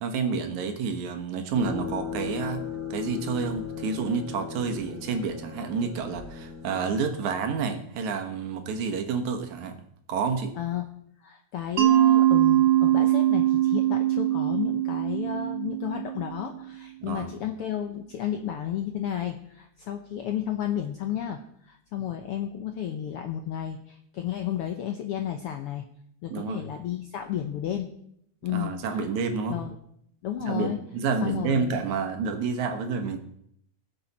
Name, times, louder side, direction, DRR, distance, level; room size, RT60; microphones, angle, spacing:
voice 1, 0.0-2.6 2.9-9.8 10.1-10.5 17.0-17.3 26.3-26.6 28.5-29.6 30.4-33.2, right 5 dB, 75° right, 7 dB, 2.5 m, -29 dB
sound 1, 1.5-7.8, left 7 dB, 40° left, 3.3 m, -37 dB
voice 2, 10.5-10.9 11.2-21.4 21.6-25.8 26.2-27.9 28.4-29.0 29.5-29.7 30.2-30.8 31.2-31.8, left 10 dB, 75° left, 5 dB, 1.3 m, -32 dB
Mallet percussion, 11.8-16.5, right 13 dB, 55° right, 1.7 m, -22 dB
20.5 x 7.1 x 4.2 m, 0.71 s
omnidirectional pair, 3.5 m